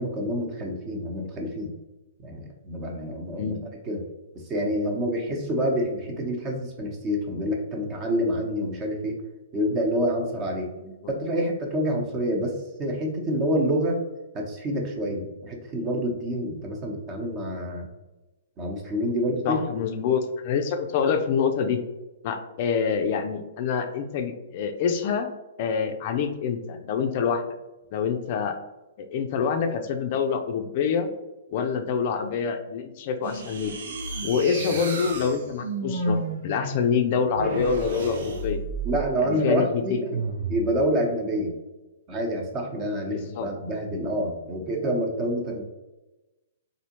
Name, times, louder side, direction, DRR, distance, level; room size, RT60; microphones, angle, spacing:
voice 1, 0.0-1.7 2.2-3.6 3.8-4.0 4.3-9.2 9.5-10.7 11.1-14.0 14.3-17.9 18.6-19.6 34.2-34.4 38.8-40.2 40.5-41.5 42.1-45.6, equal, 30° right, 2 dB, 0.9 m, -27 dB
voice 2, 19.4-21.8 22.2-25.3 25.6-27.4 27.9-28.6 29.0-31.1 31.5-33.7 34.2-36.2 36.4-38.6 39.3-40.0 43.1-43.5, left 6 dB, 45° left, 6 dB, 0.4 m, -26 dB
sound 1, 33.2-39.2 40.1-40.7, right 2 dB, 60° right, 0.7 m, -32 dB
4.1 x 2.7 x 2.9 m, 1.0 s
figure-of-eight pair, 120°, 0 cm